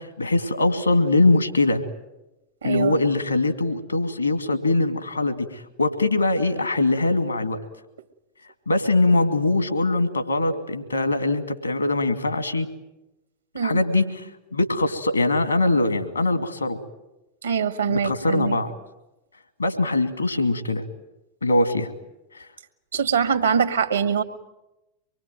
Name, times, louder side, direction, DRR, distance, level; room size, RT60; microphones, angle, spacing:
voice 1, 0.0-1.8 2.6-7.6 8.7-12.7 13.6-16.8 17.9-18.7 19.6-20.8 21.4-21.9 22.3-22.5, left 2 dB, 80° left, 9 dB, 2.4 m, -22 dB
voice 2, 2.6-3.0 13.5-13.8 17.4-18.6 22.9-24.2, right 7 dB, 70° right, 10 dB, 1.8 m, -23 dB
25.0 x 22.5 x 9.2 m, 0.96 s
figure-of-eight pair, 90°, 0 cm